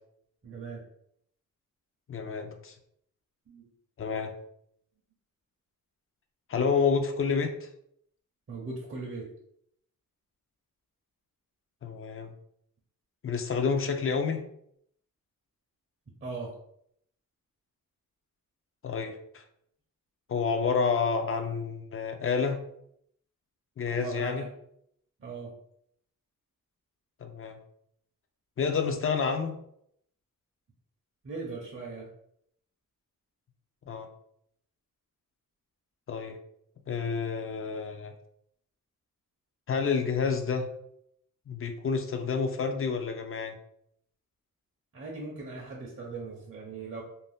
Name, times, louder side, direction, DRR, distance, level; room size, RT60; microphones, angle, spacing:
voice 1, 0.4-0.8 3.5-3.7 8.5-9.3 16.2-16.5 23.9-24.5 25.2-25.5 31.2-32.1 44.9-47.0, right 3 dB, 40° right, -2 dB, 0.6 m, -39 dB
voice 2, 2.1-2.7 4.0-4.3 6.5-7.7 11.8-12.3 13.2-14.4 18.8-19.4 20.3-22.6 23.8-24.4 27.2-27.6 28.6-29.5 33.9-34.1 36.1-36.4 36.9-38.1 39.7-40.7 41.5-43.6, left 5 dB, 40° left, 5 dB, 0.4 m, -29 dB
2.6 x 2.0 x 3.4 m, 0.71 s
wide cardioid pair, 115°, 34 cm